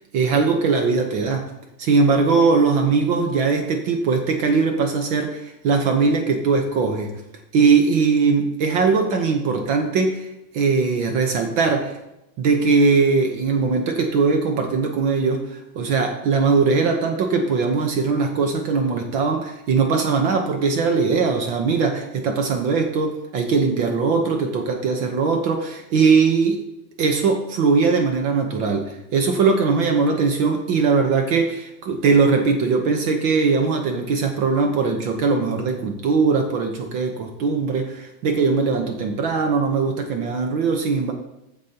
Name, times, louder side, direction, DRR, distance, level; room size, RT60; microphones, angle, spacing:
voice 1, 0.0-1.5 1.8-7.1 7.5-10.3 10.5-12.0 12.4-26.6 27.0-41.1, right 4 dB, 65° right, 4 dB, 1.2 m, -20 dB
14.5 x 9.3 x 2.9 m, 0.89 s
omnidirectional pair, 3.4 m